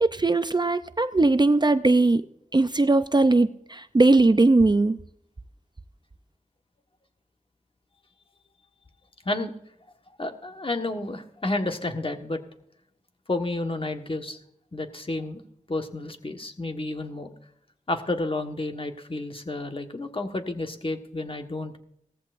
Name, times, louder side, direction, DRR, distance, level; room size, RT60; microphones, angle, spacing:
voice 1, 0.0-2.3 2.5-5.0, right 2 dB, 30° right, 12 dB, 0.6 m, -20 dB
voice 2, 10.2-12.4 13.3-14.4 14.7-15.4 15.7-17.3 17.9-21.8, left 2 dB, 40° left, 5 dB, 1.4 m, -30 dB
17.0 x 14.5 x 2.6 m, 0.73 s
wide cardioid pair, 55°, 14 cm